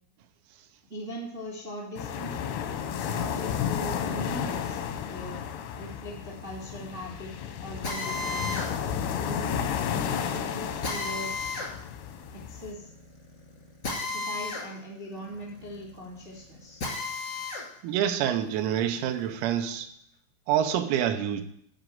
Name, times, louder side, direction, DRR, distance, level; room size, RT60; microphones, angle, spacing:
voice 1, 0.9-2.4 2.9-5.4 5.7-7.3 7.6-8.5 9.0-9.7 10.1-11.6 12.3-12.9 14.0-16.8, equal, 50° right, -4 dB, 0.8 m, -40 dB
sound 1, 2.0-12.7, left 8 dB, 85° left, 2.5 m, -32 dB
Drill, 7.8-17.7 18.1-19.7, left 3 dB, 65° left, 1.0 m, -36 dB
voice 2, 17.8-19.9 20.5-21.4, right 10 dB, 85° right, 6 dB, 3.6 m, -27 dB
11.0 x 5.0 x 7.8 m, 0.70 s
omnidirectional pair, 6.0 m